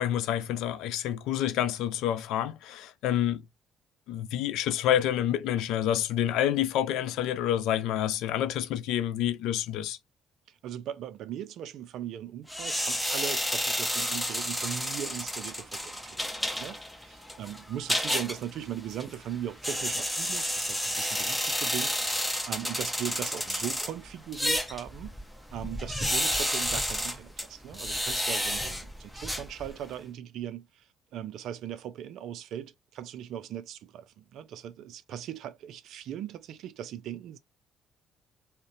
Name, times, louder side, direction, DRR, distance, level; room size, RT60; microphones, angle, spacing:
voice 1, 0.0-3.4 4.1-10.0, left 11 dB, 80° left, 0.4 m, -28 dB
voice 2, 10.5-25.1 25.5-37.4, right 10 dB, 70° right, 0.4 m, -39 dB
sound 1, 12.5-30.0, equal, 5° left, 0.7 m, -31 dB
2.5 x 2.1 x 2.4 m
supercardioid pair, 60°, 0 cm